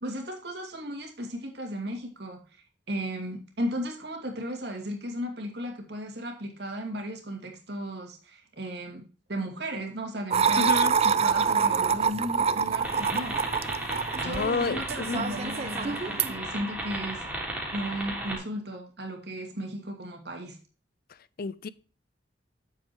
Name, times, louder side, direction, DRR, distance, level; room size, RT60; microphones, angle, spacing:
voice 1, 0.0-9.0 9.3-10.7 11.0-13.4 14.2-17.3 17.7-20.6, equal, 65° right, 2.5 m, -35 dB
sound 1, 10.3-16.4, right 6 dB, 35° right, 0.4 m, -26 dB
voice 2, 10.6-11.0 13.9-15.2 21.4-21.7, left 4 dB, 55° left, 0.5 m, -30 dB
sound 2, 12.8-18.4, right 1 dB, 10° right, 3.2 m, -35 dB
8.8 x 7.5 x 3.1 m
head